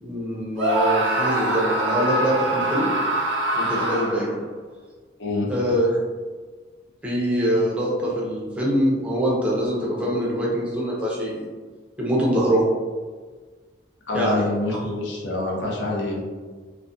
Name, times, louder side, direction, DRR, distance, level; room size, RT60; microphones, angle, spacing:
voice 1, 0.0-2.9 3.5-4.3 5.5-5.9 7.0-11.4 12.0-12.7 14.1-14.4, equal, 5° right, -5 dB, 0.5 m, -23 dB
Screaming, 0.6-4.4, right 1 dB, 85° right, 0.5 m, -24 dB
voice 2, 14.1-16.2, left 2 dB, 70° left, -2 dB, 0.6 m, -26 dB
2.3 x 2.1 x 2.5 m, 1.4 s
head